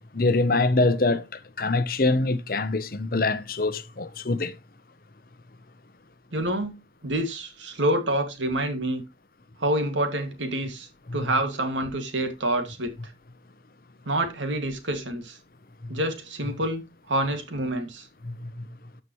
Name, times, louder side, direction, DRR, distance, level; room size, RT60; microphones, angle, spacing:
voice 1, 0.1-4.6 11.1-11.3 15.8-15.9 18.2-18.6, left 2 dB, 50° left, 0.8 m, -25 dB
voice 2, 6.3-6.8 7.0-9.0 9.6-12.9 14.1-15.4 15.9-18.1, right 1 dB, 90° right, 2.3 m, -27 dB
13.0 x 5.7 x 3.1 m
head